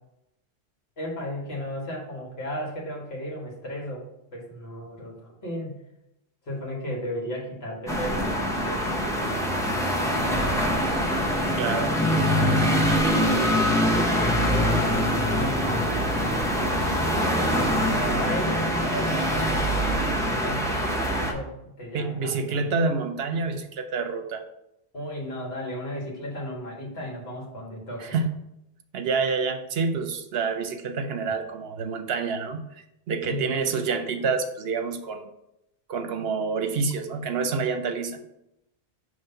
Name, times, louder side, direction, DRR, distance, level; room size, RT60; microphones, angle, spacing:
voice 1, 1.0-4.1 4.3-5.8 6.5-9.4 13.9-16.1 17.8-19.8 20.2-22.7 24.9-28.2 33.3-33.5, equal, 65° left, -2 dB, 1.9 m, -35 dB
sound 1, 7.9-21.3, equal, 5° left, 0.8 m, -24 dB
voice 2, 11.6-12.0 21.9-24.4 28.0-28.3 28.9-32.6 33.1-35.3 35.9-38.2, right 4 dB, 65° right, 7 dB, 0.9 m, -27 dB
5.3 x 3.3 x 5.5 m, 0.84 s
omnidirectional pair, 1.1 m